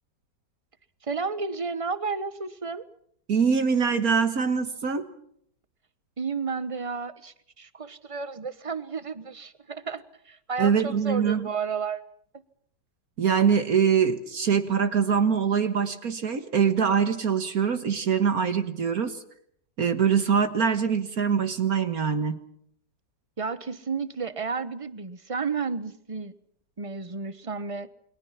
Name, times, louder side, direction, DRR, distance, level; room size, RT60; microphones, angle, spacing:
voice 1, 1.0-2.9 6.2-12.0 23.4-26.3 26.8-27.9, right 5 dB, 25° right, 14 dB, 0.9 m, -32 dB
voice 2, 3.3-5.1 10.6-11.5 13.2-19.2 19.8-22.4, right 6 dB, 60° right, 10 dB, 1.8 m, -23 dB
29.0 x 22.5 x 5.8 m, 0.67 s
omnidirectional pair, 1.8 m